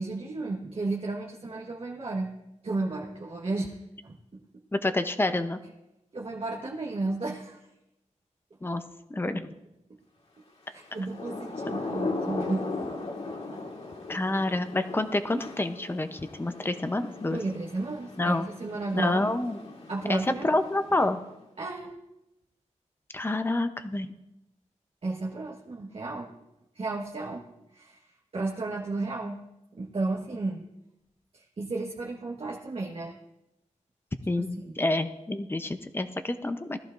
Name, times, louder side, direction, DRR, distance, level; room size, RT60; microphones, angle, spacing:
voice 1, 0.0-2.3 2.6-4.6 6.1-7.7 9.9-10.0 10.7-12.7 13.3-13.6 14.1-14.2 17.3-19.3 19.9-20.6 21.6-22.0 25.0-26.3 26.7-27.4 27.7-29.4 29.7-30.6 31.3-33.1 34.4-34.8, right 3 dB, 50° right, -2 dB, 1.3 m, -33 dB
voice 2, 4.7-5.6 8.6-8.8 9.1-9.5 14.1-17.4 18.2-18.5 18.9-19.6 20.1-21.2 23.1-24.1 34.3-36.8, left 2 dB, 20° left, 8 dB, 0.7 m, -28 dB
Thunder / Rain, 10.9-21.4, left 3 dB, 60° left, 1.9 m, -38 dB
20.0 x 14.0 x 2.6 m, 0.92 s
wide cardioid pair, 155°, 13 cm